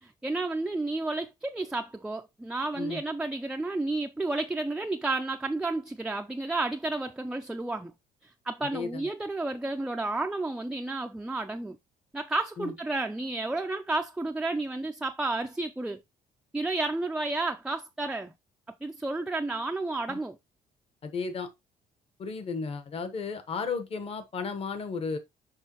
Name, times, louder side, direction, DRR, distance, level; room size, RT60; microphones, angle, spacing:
voice 1, 0.0-7.9 8.2-11.8 12.1-16.0 16.5-18.3 18.8-20.4, right 2 dB, 5° right, 0.4 m, -31 dB
voice 2, 21.0-21.5 22.2-25.2, left 5 dB, 40° left, 1.1 m, -34 dB
6.4 x 5.3 x 2.9 m
cardioid pair, 125°, 15 cm